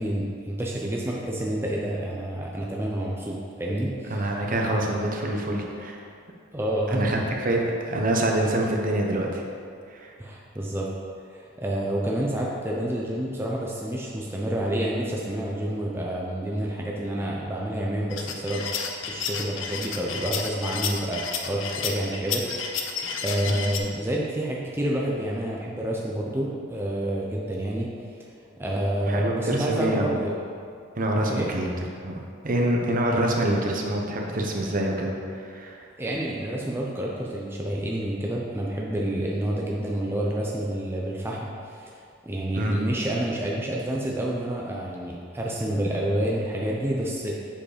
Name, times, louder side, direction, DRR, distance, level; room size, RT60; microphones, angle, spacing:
voice 1, 0.0-4.4 6.5-7.2 10.2-10.9 11.3-18.6 19.1-22.8 23.2-28.2 28.6-30.3 31.3-31.5 36.0-42.0 42.2-47.4, right 1 dB, 10° right, -3 dB, 0.6 m, -29 dB
voice 2, 4.1-6.0 6.9-9.4 9.9-10.1 23.5-23.6 29.1-30.2 31.0-31.7 32.0-32.2 32.4-35.8 42.6-42.8, right 1 dB, 45° right, 0 dB, 0.9 m, -26 dB
sound 1, 18.1-23.8, left 6 dB, 80° left, 0.7 m, -31 dB
7.4 x 4.8 x 5.0 m, 2.4 s
head